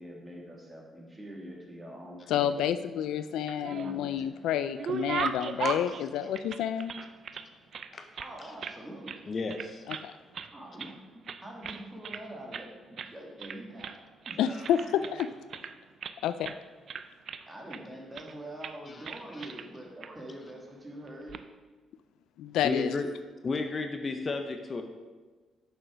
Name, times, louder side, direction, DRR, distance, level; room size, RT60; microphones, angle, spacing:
voice 1, 0.0-2.6 3.6-4.1 8.2-9.3 10.5-14.0 14.3-15.1 17.5-21.3, right 1 dB, 15° right, -1 dB, 2.1 m, -44 dB
voice 2, 2.3-6.9 9.9-10.1 14.4-15.3 16.2-16.5 22.4-23.0, left 10 dB, 85° left, 12 dB, 0.3 m, -29 dB
sound 1, 3.3-4.2 4.5-7.5 7.7-8.8 9.1-9.2 9.5-10.1 10.3-11.0 11.3-12.2 12.5-12.7 13.0-13.1 13.4-14.0 14.2-16.2 16.4-16.6 16.9-17.8 18.1-18.3 18.6-18.8 19.0-19.7 20.0-20.1 21.1-21.4, right 6 dB, 55° right, 0.4 m, -37 dB
voice 3, 9.3-9.9 18.9-19.1 19.3-19.5 22.6-23.1 23.4-24.8, left 3 dB, 40° left, 6 dB, 0.7 m, -33 dB
6.7 x 6.4 x 5.1 m, 1.3 s
cardioid pair, 90°, 0 cm